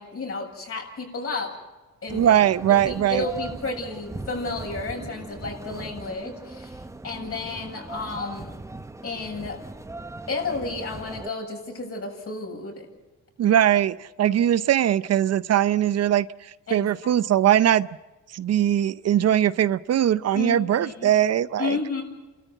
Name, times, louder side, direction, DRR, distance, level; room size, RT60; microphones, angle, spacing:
voice 1, 0.0-1.6 2.0-2.4 2.7-8.6 9.0-9.6 10.3-12.9 16.7-17.1 20.3-21.2 21.6-22.0, left 3 dB, 50° left, 1 dB, 7.5 m, -32 dB
sound 1, 2.1-11.3, right 2 dB, 10° right, 0.8 m, -39 dB
voice 2, 2.1-3.3 13.4-17.9 18.3-21.8, right 10 dB, 55° right, 15 dB, 0.6 m, -21 dB
30.0 x 13.5 x 8.1 m, 1.2 s
cardioid pair, 90°, 30 cm